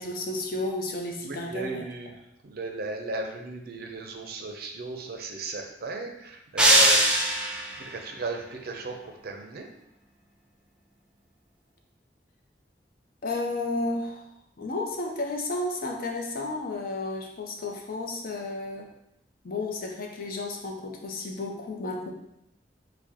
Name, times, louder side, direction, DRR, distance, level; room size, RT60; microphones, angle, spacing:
voice 1, 0.0-1.8 13.2-14.2 14.6-18.9 19.4-22.1, left 2 dB, 55° left, 1 dB, 0.6 m, -32 dB
voice 2, 1.2-2.2 2.4-7.1 7.8-9.0 9.2-9.7, right 2 dB, 60° right, 3 dB, 0.5 m, -35 dB
sound 1, 6.6-7.8, right 1 dB, 5° right, 0.5 m, -20 dB
4.7 x 2.1 x 2.8 m, 0.82 s
head